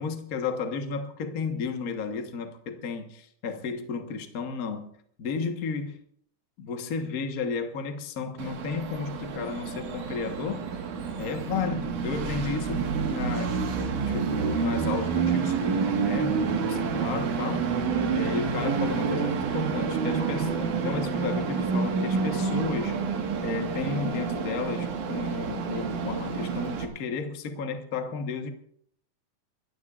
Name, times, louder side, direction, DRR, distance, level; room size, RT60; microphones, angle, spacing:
voice 1, 0.0-4.9 5.2-5.9 6.6-10.7 11.2-17.7 18.1-23.0 23.4-28.5, left 5 dB, 65° left, 0.8 m, -33 dB
Train, 8.4-26.9, right 5 dB, 75° right, 3.1 m, -28 dB
29.0 x 14.0 x 2.5 m
omnidirectional pair, 3.6 m